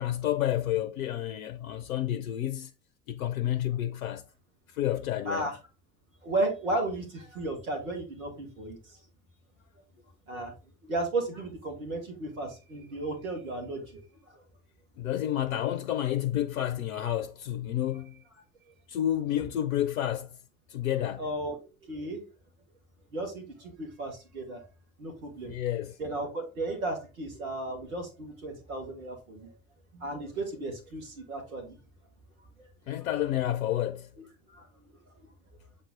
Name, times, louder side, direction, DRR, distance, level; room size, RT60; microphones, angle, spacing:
voice 1, 0.0-2.7 3.1-4.3 4.7-5.5 15.0-18.2 18.9-20.4 20.7-21.2 25.4-26.0 32.9-34.1, left 12 dB, 70° left, 0.7 m, -30 dB
voice 2, 5.3-5.6 6.2-9.0 10.3-10.5 10.8-14.0 14.3-14.4 21.2-21.6 21.8-22.3 23.1-24.6 25.0-25.5 26.0-29.5 29.9-31.8 32.6-32.7 34.5-34.8, right 2 dB, 75° right, 2.3 m, -34 dB
7.7 x 3.9 x 3.8 m
figure-of-eight pair, 65°, 42 cm